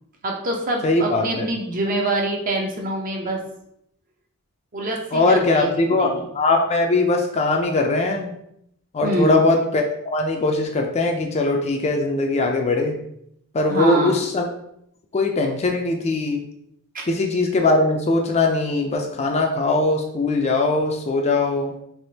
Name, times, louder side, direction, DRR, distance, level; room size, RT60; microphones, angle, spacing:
voice 1, 0.2-3.4 4.7-6.3 9.0-9.5 13.7-14.2 16.9-17.1, right 1 dB, 35° right, 1 dB, 0.6 m, -25 dB
voice 2, 0.8-1.5 5.1-8.3 8.9-13.0 13.5-14.5 15.1-16.5 17.1-21.7, left 2 dB, 30° left, 2 dB, 0.3 m, -21 dB
3.4 x 2.9 x 2.7 m, 0.74 s
head